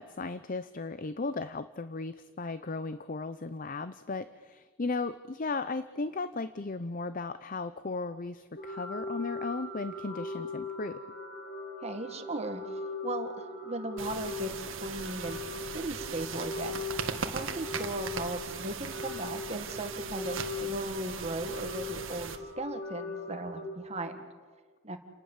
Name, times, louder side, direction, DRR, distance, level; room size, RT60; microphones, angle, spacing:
voice 1, 0.0-11.0, left 3 dB, 40° left, 13 dB, 0.6 m, -36 dB
sound 1, 8.6-23.7, left 3 dB, 70° left, 4.4 m, -40 dB
voice 2, 11.8-12.6 13.0-15.4 15.7-16.8 17.3-24.2 24.8-25.0, right 2 dB, 30° right, 6 dB, 1.8 m, -37 dB
sound 2, 14.0-22.4, right 5 dB, 70° right, 1.8 m, -39 dB
30.0 x 19.5 x 7.3 m, 1.5 s
head